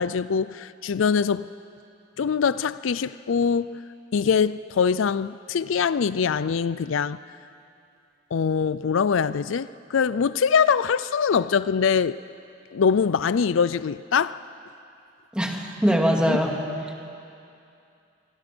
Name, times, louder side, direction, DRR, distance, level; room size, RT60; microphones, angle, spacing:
voice 1, 0.0-1.5 2.2-3.8 4.1-7.2 8.3-12.2 12.7-14.4 16.3-16.4, left 6 dB, 80° left, 0.4 m, -23 dB
voice 2, 15.3-16.6, equal, 5° right, 2.4 m, -22 dB
25.5 x 23.5 x 6.2 m
head